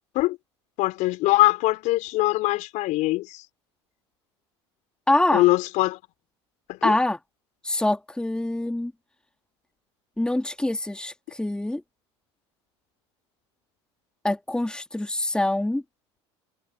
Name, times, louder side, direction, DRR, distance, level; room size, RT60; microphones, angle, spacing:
voice 1, 0.8-3.4 5.3-6.0 6.7-7.0, left 19 dB, 60° left, 5.0 m, -22 dB
voice 2, 5.1-5.4 6.8-7.2 7.6-8.9 10.2-11.8 14.2-15.8, left 1 dB, 5° left, 2.7 m, -25 dB
hypercardioid pair, 75°, 15 cm